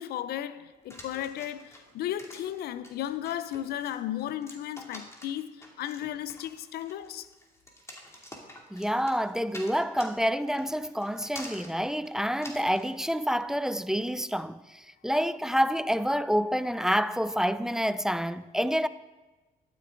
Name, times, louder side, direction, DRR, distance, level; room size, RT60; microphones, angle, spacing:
voice 1, 0.0-7.3, left 11 dB, 75° left, 0.5 m, -35 dB
sound 1, 0.9-12.9, left 1 dB, 15° left, 2.5 m, -47 dB
voice 2, 8.7-18.9, equal, 5° right, 0.4 m, -28 dB
11.5 x 9.6 x 3.8 m
supercardioid pair, 65°, 16 cm